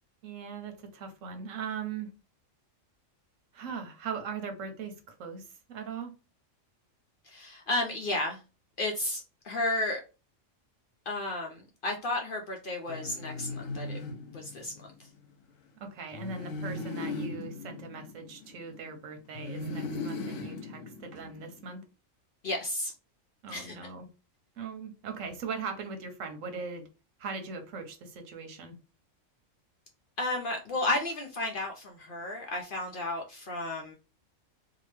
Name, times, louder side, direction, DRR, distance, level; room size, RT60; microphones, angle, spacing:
voice 1, 0.2-2.1 3.5-6.1 15.8-21.8 23.4-24.1 24.6-26.8 27.2-28.7, right 5 dB, 80° right, 1.1 m, -40 dB
voice 2, 7.2-8.4 8.8-10.0 11.1-14.0 14.3-15.1 22.4-22.9 23.5-23.8 30.2-33.9, left 2 dB, 60° left, 0.6 m, -33 dB
sound 1, 12.9-15.0 16.1-18.8 19.3-21.6, left 3 dB, 80° left, 0.9 m, -38 dB
2.8 x 2.2 x 3.2 m
omnidirectional pair, 1.3 m